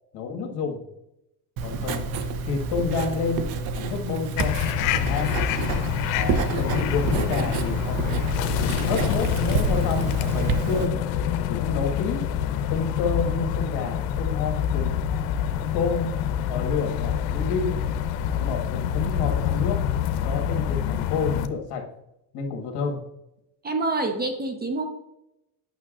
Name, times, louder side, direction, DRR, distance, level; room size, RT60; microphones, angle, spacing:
voice 1, 0.1-0.8 1.6-2.1 2.5-3.4 3.7-5.4 6.1-8.0 8.3-8.4 8.8-10.9 11.5-12.2 12.7-15.0 15.7-16.1 16.5-17.8 18.3-19.8 20.2-21.8 22.3-23.0, left 5 dB, 60° left, 2 dB, 1.8 m, -29 dB
Writing, 1.6-10.9, right 4 dB, 50° right, 0.8 m, -29 dB
sound 1, 4.4-21.5, left 9 dB, 85° left, 0.8 m, -26 dB
voice 2, 23.6-24.9, right 2 dB, 20° right, 5 dB, 0.8 m, -26 dB
9.2 x 6.0 x 2.5 m, 0.86 s
supercardioid pair, 120°, 45 cm